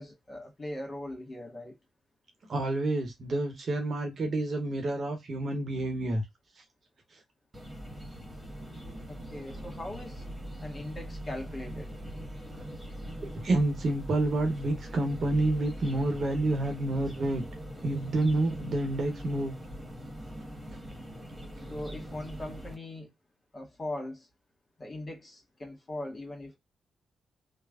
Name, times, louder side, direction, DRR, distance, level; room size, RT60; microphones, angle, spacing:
voice 1, 0.0-1.7 9.1-10.2 10.6-11.9 21.7-23.1 23.5-24.3 24.8-26.6, left 1 dB, 35° left, 1.5 m, -40 dB
voice 2, 2.5-6.2 13.2-17.4 17.8-19.5, right 2 dB, 55° right, 0.9 m, -29 dB
sound 1, 7.5-22.7, equal, 25° right, 1.4 m, -42 dB
3.1 x 2.1 x 2.3 m
hypercardioid pair, 45°, 0 cm